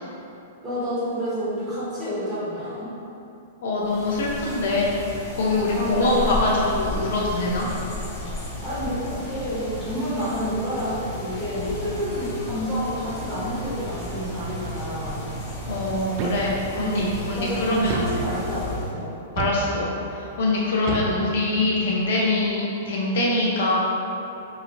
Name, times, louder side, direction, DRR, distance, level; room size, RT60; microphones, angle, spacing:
voice 1, 0.6-2.9 5.7-6.4 8.6-15.2 16.8-17.0 17.3-19.2, equal, 10° right, -13 dB, 1.3 m, -29 dB
voice 2, 3.6-4.9 5.3-7.7 15.7-17.9 19.4-23.8, left 2 dB, 65° left, -5 dB, 0.6 m, -24 dB
sound 1, 3.8-18.9, left 1 dB, 25° left, 0.7 m, -34 dB
sound 2, 16.2-16.9 17.9-18.7 19.4-20.2 20.9-21.9, right 3 dB, 45° right, 0.3 m, -31 dB
2.9 x 2.8 x 2.5 m, 2.8 s
hypercardioid pair, 125°, 0 cm